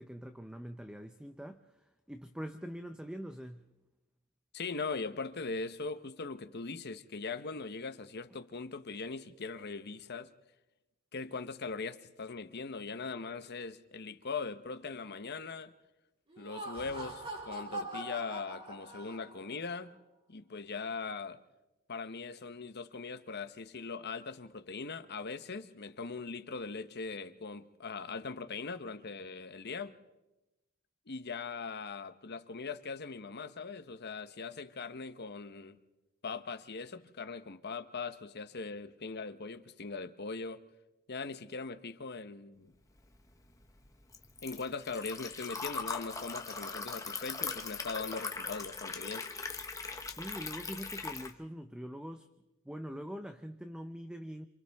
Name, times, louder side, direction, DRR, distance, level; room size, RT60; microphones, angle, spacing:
voice 1, 0.0-3.7 50.0-52.3 52.6-54.5, equal, 5° right, 0.6 m, -44 dB
voice 2, 4.5-10.3 11.1-15.7 16.4-19.9 20.3-21.4 21.9-29.9 31.1-35.8 36.2-40.6 41.1-42.7 44.4-49.3, left 4 dB, 50° left, 1.0 m, -40 dB
Laughter, 16.3-19.6, right 1 dB, 30° right, 4.3 m, -42 dB
Liquid, 43.0-51.3, left 4 dB, 15° left, 1.2 m, -40 dB
28.0 x 27.5 x 3.5 m
head